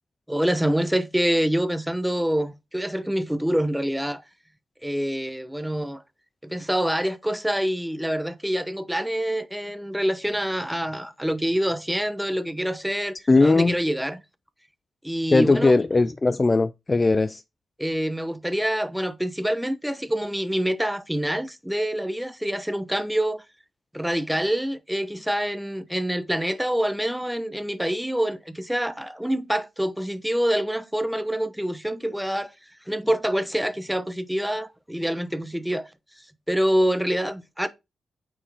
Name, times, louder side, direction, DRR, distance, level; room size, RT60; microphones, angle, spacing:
voice 1, 0.3-4.2 4.8-6.0 6.4-14.2 15.0-15.7 17.8-23.4 23.9-32.5 32.9-35.9 36.2-37.7, equal, 5° right, 0.8 m, -26 dB
voice 2, 13.3-13.8 15.3-17.4, left 3 dB, 25° left, 0.3 m, -19 dB
8.9 x 4.4 x 3.5 m
cardioid pair, 95°, 0 cm